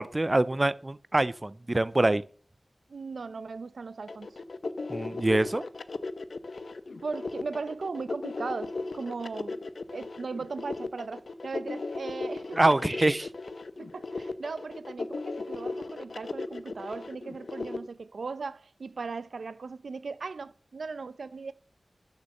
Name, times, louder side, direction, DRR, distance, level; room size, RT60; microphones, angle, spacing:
voice 1, 0.0-2.2 4.9-5.6 12.6-13.3, right 2 dB, 25° right, 0.5 m, -25 dB
voice 2, 2.9-4.4 7.0-9.7 9.9-12.8 13.8-21.5, right 4 dB, 85° right, 0.7 m, -38 dB
sound 1, 4.1-17.8, left 3 dB, 65° left, 0.9 m, -36 dB
11.5 x 6.8 x 6.5 m
wide cardioid pair, 90°, 0 cm